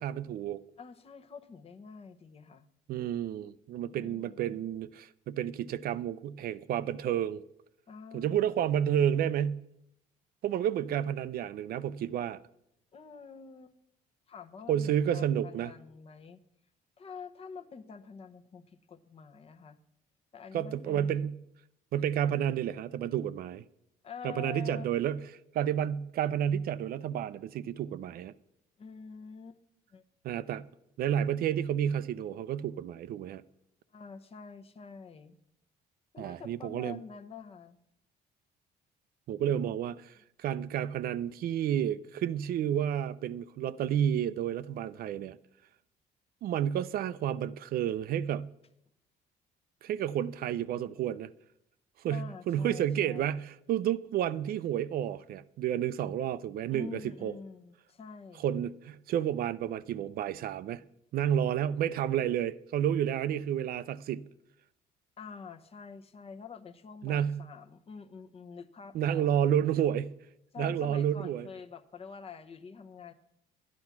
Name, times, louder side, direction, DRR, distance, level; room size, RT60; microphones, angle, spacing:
voice 1, 0.0-0.6 2.9-7.4 8.1-9.6 10.4-12.4 14.7-15.7 20.5-21.4 21.9-23.6 24.2-25.3 25.5-28.3 30.2-30.7 31.0-33.4 36.2-37.0 39.3-45.4 46.4-48.5 49.8-51.3 52.0-57.3 58.4-60.8 61.1-64.2 67.0-67.5 68.9-70.1 70.6-71.5, right 10 dB, 60° right, 0.5 m, -30 dB
voice 2, 0.8-2.7 3.9-4.7 7.9-8.5 12.9-13.8 14.3-16.4 17.0-19.8 20.3-21.3 24.0-24.8 28.8-29.6 29.9-30.0 33.9-35.4 36.1-37.8 39.5-39.6 52.1-53.4 56.7-58.5 65.2-69.3 70.5-73.1, left 6 dB, 35° left, 0.9 m, -47 dB
12.0 x 9.7 x 5.9 m
cardioid pair, 110°, 17 cm